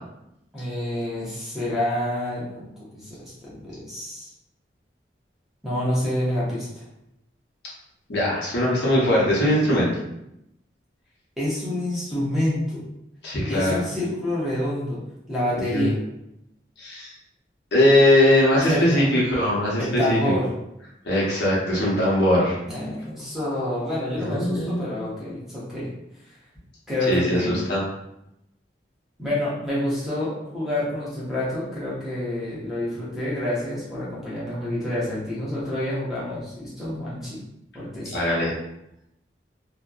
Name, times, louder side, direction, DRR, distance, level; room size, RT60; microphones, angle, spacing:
voice 1, 0.5-4.3 5.6-6.7 11.4-12.8 13.4-15.0 15.3-15.9 18.7-19.1 19.8-20.5 22.7-25.9 26.9-27.6 29.2-37.4 37.7-38.2, left 1 dB, ahead, -9 dB, 0.7 m, -28 dB
voice 2, 8.1-9.9 13.2-13.8 15.7-15.9 16.8-17.1 17.7-20.4 21.0-22.6 24.1-24.8 27.1-27.8 38.1-38.5, left 1 dB, 80° left, -5 dB, 0.8 m, -20 dB
2.7 x 2.1 x 2.3 m, 0.83 s
head